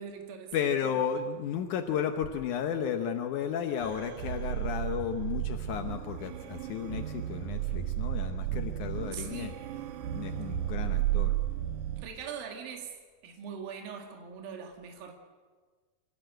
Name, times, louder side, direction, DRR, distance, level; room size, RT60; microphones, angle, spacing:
voice 1, 0.0-0.5 0.8-1.0 9.1-9.6 12.0-13.0 13.2-15.1, right 7 dB, 60° right, 3 dB, 3.7 m, -42 dB
voice 2, 0.5-9.5 10.1-11.4, left 8 dB, 85° left, 6 dB, 1.7 m, -33 dB
sound 1, 3.8-12.0, right 12 dB, 80° right, 1.8 m, -33 dB
25.5 x 16.0 x 7.8 m, 1.5 s
omnidirectional pair, 4.9 m